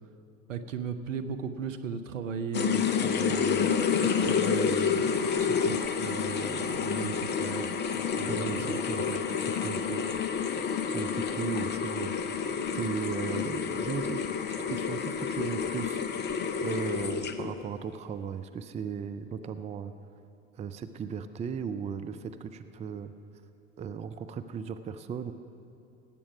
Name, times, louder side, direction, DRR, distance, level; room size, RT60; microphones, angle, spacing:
voice 1, 0.5-7.7 8.1-10.1, right 6 dB, 75° right, 9 dB, 1.0 m, -37 dB
sound 1, 2.5-17.6, left 6 dB, 25° left, 0.8 m, -29 dB
voice 2, 8.2-9.0 9.6-9.8 10.9-12.1 12.7-14.2 14.5-16.0 16.6-19.9 20.5-23.1 23.8-25.3, right 6 dB, 15° right, 9 dB, 0.5 m, -36 dB
18.0 x 8.7 x 6.0 m, 2.9 s
figure-of-eight pair, 75°, 39 cm